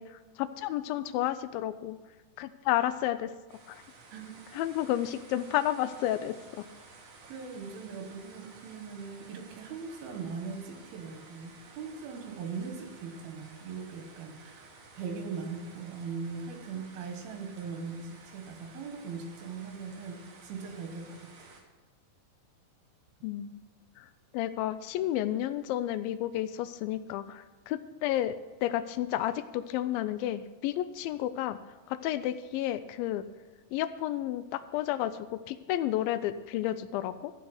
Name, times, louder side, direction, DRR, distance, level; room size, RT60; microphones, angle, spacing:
voice 1, 0.0-2.0 2.4-3.3 3.7-3.8 4.5-6.7 23.2-23.6 24.0-24.1 24.3-31.6 31.9-33.2 33.7-37.3, left 13 dB, 85° left, 12 dB, 2.2 m, -31 dB
sound 1, 3.5-21.6, right 3 dB, 60° right, 2.7 m, -54 dB
voice 2, 4.1-4.4 7.2-21.5, right 5 dB, 85° right, 4 dB, 3.3 m, -40 dB
14.0 x 4.7 x 7.8 m, 1.2 s
omnidirectional pair, 4.2 m